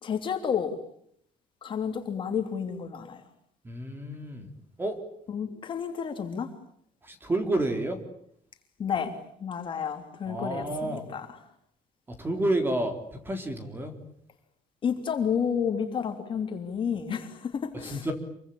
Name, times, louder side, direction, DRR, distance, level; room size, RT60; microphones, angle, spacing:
voice 1, 0.0-0.8 1.6-3.2 5.3-6.5 8.8-9.1 9.4-11.3 14.8-18.0, left 7 dB, 35° left, 5 dB, 3.3 m, -30 dB
voice 2, 3.6-4.5 4.8-5.0 7.0-8.0 10.3-11.1 12.2-14.0 17.8-18.1, right 1 dB, 15° right, 6 dB, 3.8 m, -30 dB
28.5 x 24.0 x 8.6 m, 0.69 s
cardioid pair, 175°, 15 cm